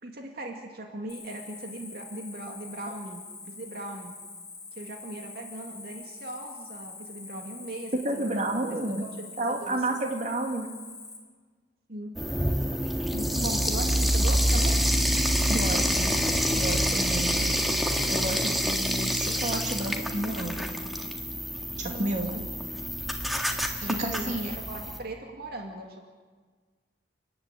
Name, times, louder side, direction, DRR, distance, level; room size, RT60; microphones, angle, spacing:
voice 1, 0.0-3.2 3.5-4.1 4.7-8.6 9.0-9.8 11.9-12.2 13.1-14.8 21.9-22.5 23.8-26.1, right 1 dB, 60° right, 2 dB, 2.2 m, -39 dB
Cricket, 1.1-11.2, left 3 dB, 20° left, 4.5 m, -45 dB
voice 2, 8.0-9.0 9.4-10.7 15.5-16.1 16.5-17.6 18.1-20.7 21.8-22.3 23.8-24.6, right 1 dB, 45° right, 2 dB, 2.5 m, -31 dB
sound 1, 12.2-25.0, equal, ahead, 1.8 m, -27 dB
29.5 x 11.0 x 9.1 m, 1.5 s
head